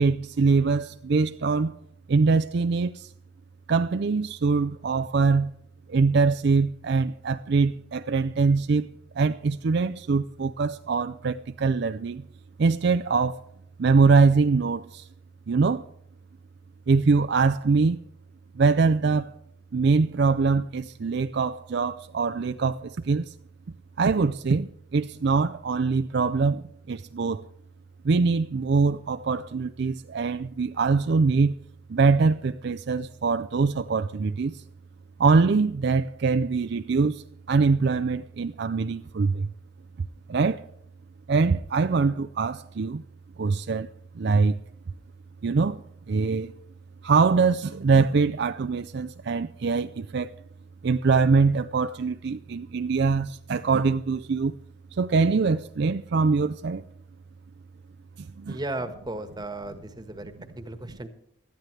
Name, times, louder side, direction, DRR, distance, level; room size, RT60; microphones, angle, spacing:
voice 1, 0.0-1.7 2.1-3.1 3.7-5.5 5.9-8.9 9.1-12.3 12.6-13.4 13.8-15.1 15.5-15.8 16.9-18.0 18.6-19.3 19.7-23.3 24.0-27.4 28.0-31.5 31.9-34.6 35.2-39.5 40.3-40.6 41.3-43.0 43.4-43.9 44.1-44.6 45.4-45.8 46.1-46.5 47.0-50.3 50.8-54.6 54.9-56.8 58.2-58.6, right 4 dB, 60° right, 0.4 m, -23 dB
voice 2, 58.5-61.1, right 2 dB, 20° right, 1.3 m, -35 dB
19.5 x 13.0 x 3.3 m
head